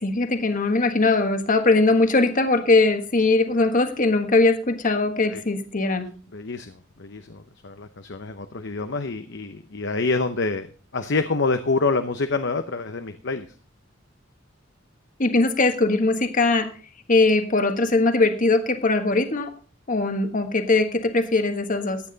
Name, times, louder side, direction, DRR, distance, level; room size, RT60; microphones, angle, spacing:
voice 1, 0.0-6.1 15.2-16.7 17.1-19.5 19.9-22.0, left 3 dB, 45° left, 7 dB, 1.4 m, -20 dB
voice 2, 6.3-13.5, left 3 dB, 65° left, 8 dB, 0.9 m, -27 dB
15.5 x 9.8 x 4.0 m, 0.40 s
head